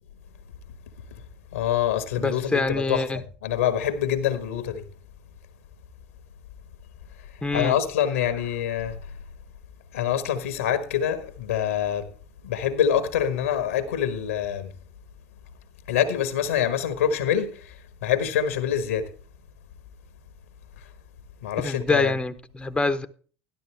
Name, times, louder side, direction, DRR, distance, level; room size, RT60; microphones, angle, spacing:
voice 1, 1.5-4.9 7.2-9.2 9.9-12.1 12.4-14.7 15.9-19.1 20.8-20.9 21.4-22.2, left 9 dB, 80° left, 1.4 m, -26 dB
voice 2, 2.2-3.2 7.4-7.8 21.6-23.1, left 3 dB, 15° left, 1.0 m, -25 dB
12.5 x 11.5 x 3.4 m
hypercardioid pair, 70°, 7 cm